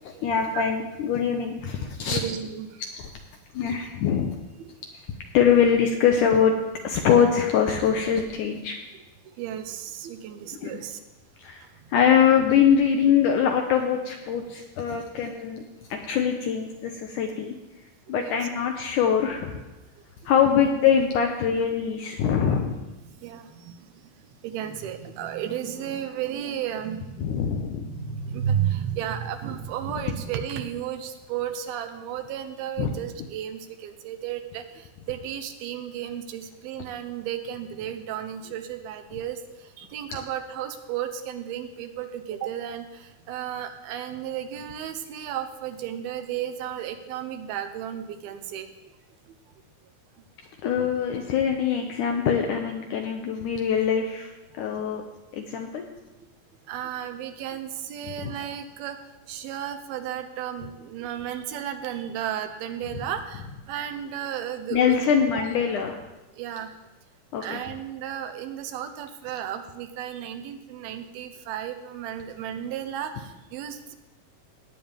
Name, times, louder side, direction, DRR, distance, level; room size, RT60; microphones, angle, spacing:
voice 1, 0.2-2.2 3.5-4.4 5.3-6.6 6.8-8.8 10.6-10.7 11.4-11.6 11.9-15.6 15.9-17.5 18.1-19.6 20.3-22.8 27.2-27.9 32.8-32.9 40.1-40.2 50.6-54.3 54.6-55.0 55.3-55.8 58.0-58.3 64.7-66.0 67.3-67.6, left 7 dB, 75° left, 3 dB, 1.9 m, -23 dB
voice 2, 2.1-2.8 3.8-3.9 4.6-4.8 5.4-5.7 9.3-11.0 18.1-18.5 23.0-23.9 24.4-27.3 27.9-48.7 49.3-49.4 55.9-56.0 56.7-59.0 59.3-65.6 66.3-66.7 67.4-74.0, right 10 dB, 80° right, 8 dB, 2.6 m, -33 dB
17.5 x 8.9 x 3.5 m, 1.1 s
omnidirectional pair, 4.4 m